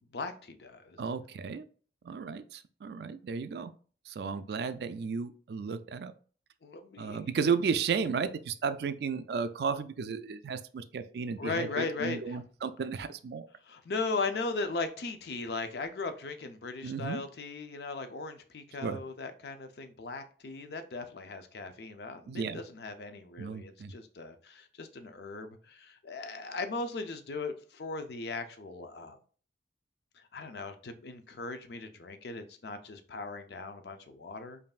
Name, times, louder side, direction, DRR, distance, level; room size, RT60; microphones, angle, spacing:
voice 1, 0.1-1.0 6.6-7.2 11.4-12.4 13.6-29.2 30.2-34.6, left 3 dB, 65° left, 0.5 m, -38 dB
voice 2, 1.0-1.7 2.0-3.7 4.1-6.1 7.0-13.5 16.8-17.2 18.8-19.0 22.3-22.6 23.4-23.9, right 5 dB, 65° right, 0.3 m, -34 dB
5.3 x 2.6 x 2.4 m
head